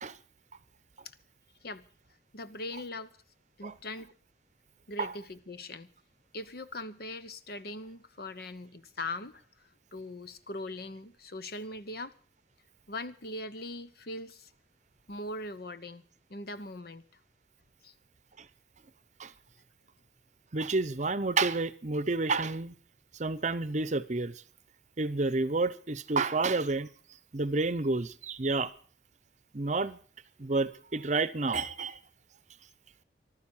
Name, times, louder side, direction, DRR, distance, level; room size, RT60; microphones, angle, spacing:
voice 1, 2.3-3.1 3.6-4.1 4.9-5.9 6.3-9.4 9.9-12.1 12.9-14.5 15.1-16.0 16.3-17.0 17.8-17.9, left 2 dB, 60° left, 1.0 m, -40 dB
voice 2, 20.5-22.7 23.2-24.3 25.0-26.9 27.3-28.7 29.5-30.0 30.4-32.0, right 3 dB, 45° right, 0.8 m, -30 dB
14.5 x 12.5 x 7.2 m
head